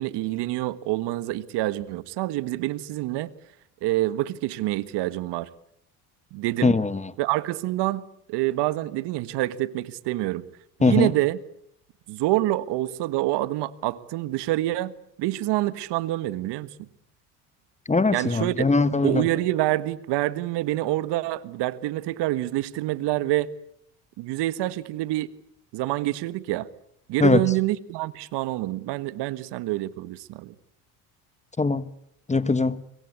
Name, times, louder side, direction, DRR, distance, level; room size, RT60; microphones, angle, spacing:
voice 1, 0.0-3.3 3.8-5.5 6.3-6.8 7.2-10.4 10.8-11.4 12.1-14.9 15.2-16.9 18.1-18.7 19.0-23.5 24.2-25.3 25.7-26.7 27.1-30.5, right 16 dB, 65° right, 1.5 m, -26 dB
voice 2, 6.6-7.1 10.8-11.1 17.9-19.2 27.2-27.4 31.6-31.8 32.3-32.8, left 3 dB, 15° left, 1.4 m, -21 dB
26.0 x 23.0 x 8.2 m
hypercardioid pair, 75°, 45 cm